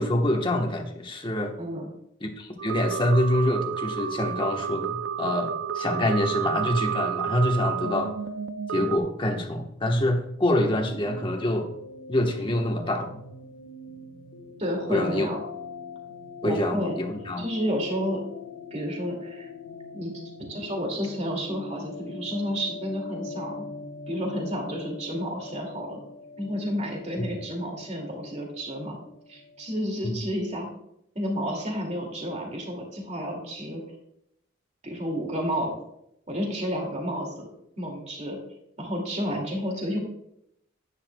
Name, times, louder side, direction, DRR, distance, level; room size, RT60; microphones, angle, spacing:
voice 1, 0.0-1.5 2.2-8.1 8.7-11.7 12.1-13.2 14.9-15.3 16.4-17.4 27.2-27.3 30.0-30.2, left 1 dB, 25° left, 3 dB, 1.2 m, -26 dB
voice 2, 1.6-1.9 14.6-15.4 16.4-16.9 17.4-18.2 18.7-19.5 19.9-20.2 20.5-23.7 24.1-26.0 26.4-29.0 29.3-30.7 31.1-33.8 34.8-35.7 36.3-37.5 37.8-38.4 38.8-40.0, equal, 35° right, 1 dB, 2.3 m, -31 dB
sound 1, 2.6-9.0, right 8 dB, 60° right, 0.5 m, -31 dB
sound 2, 10.3-29.8, left 3 dB, 65° left, 1.2 m, -42 dB
10.5 x 9.8 x 2.2 m, 0.77 s
head